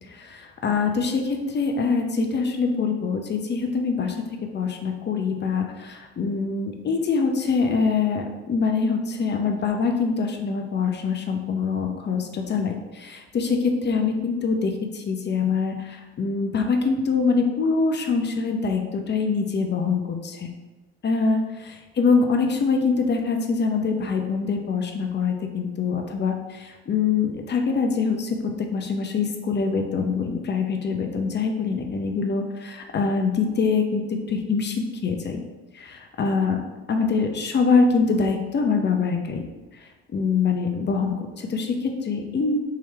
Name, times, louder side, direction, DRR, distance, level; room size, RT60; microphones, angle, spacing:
voice 1, 0.1-4.2 4.5-20.5 21.0-35.4 35.7-35.9 36.2-36.6 36.9-39.4 40.1-42.6, left 4 dB, 35° left, 4 dB, 0.7 m, -24 dB
3.7 x 3.0 x 3.2 m, 1.2 s
supercardioid pair, 70°, 30 cm